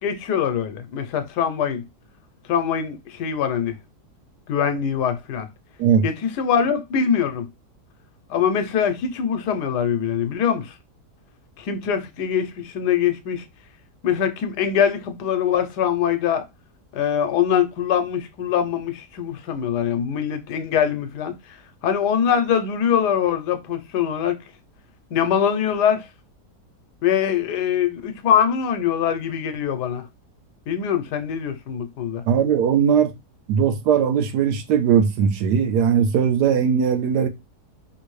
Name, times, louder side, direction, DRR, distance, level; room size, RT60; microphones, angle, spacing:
voice 1, 0.0-1.8 2.5-3.8 4.5-5.5 6.0-7.5 8.3-10.7 11.6-13.4 14.0-16.4 16.9-21.3 21.8-24.4 25.1-26.1 27.0-30.1 30.7-32.2, left 8 dB, 85° left, 1.2 m, -23 dB
voice 2, 32.3-33.1 33.5-37.3, right 7 dB, 85° right, 1.2 m, -19 dB
3.2 x 2.6 x 3.1 m
omnidirectional pair, 1.7 m